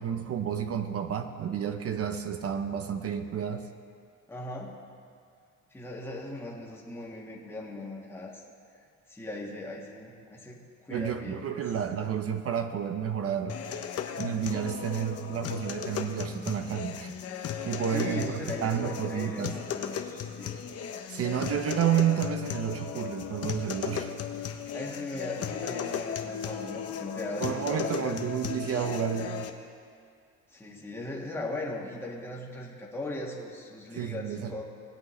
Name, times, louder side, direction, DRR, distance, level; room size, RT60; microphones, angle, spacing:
voice 1, 0.0-3.6 10.9-13.6 14.2-17.1 17.6-19.5 21.1-24.1 27.4-29.5 33.9-34.5, right 8 dB, 50° right, 7 dB, 0.8 m, -30 dB
voice 2, 4.3-4.8 5.7-8.4 9.1-11.7 17.9-20.6 24.7-28.2 30.5-34.6, left 1 dB, 10° left, -4 dB, 1.6 m, -38 dB
sound 1, 13.5-29.5, left 8 dB, 50° left, 0.8 m, -36 dB
19.5 x 8.2 x 3.2 m, 2.2 s
cardioid pair, 115°, 31 cm